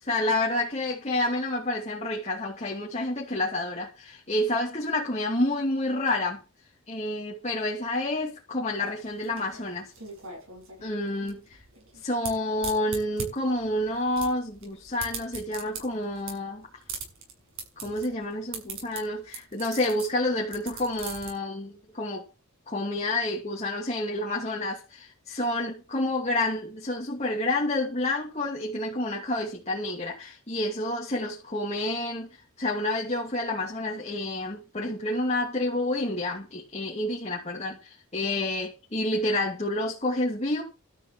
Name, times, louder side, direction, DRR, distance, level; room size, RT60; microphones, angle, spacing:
voice 1, 0.0-6.4 6.9-9.9 10.8-11.6 12.0-16.7 17.8-22.2 22.7-40.6, left 1 dB, 30° left, 2.6 m, -29 dB
sound 1, 8.8-21.3, right 4 dB, 65° right, 6.7 m, -40 dB
13.0 x 6.4 x 7.6 m
head